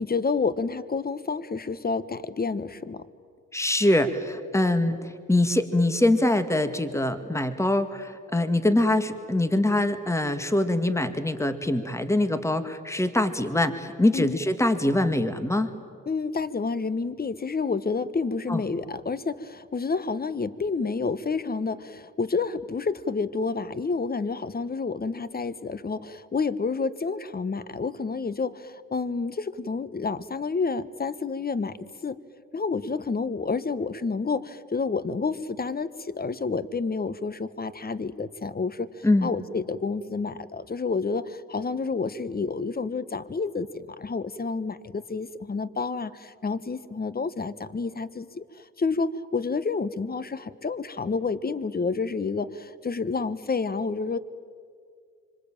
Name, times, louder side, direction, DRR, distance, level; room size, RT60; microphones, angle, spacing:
voice 1, 0.0-3.0 14.1-14.4 16.0-31.8 32.0-32.2 32.5-54.2, left 4 dB, 25° left, 16 dB, 1.4 m, -29 dB
voice 2, 3.5-5.0 5.3-15.7 18.5-18.6 39.0-39.3, left 1 dB, 10° left, 10 dB, 2.1 m, -23 dB
26.0 x 25.0 x 9.0 m, 2.1 s
hypercardioid pair, 60°, 35 cm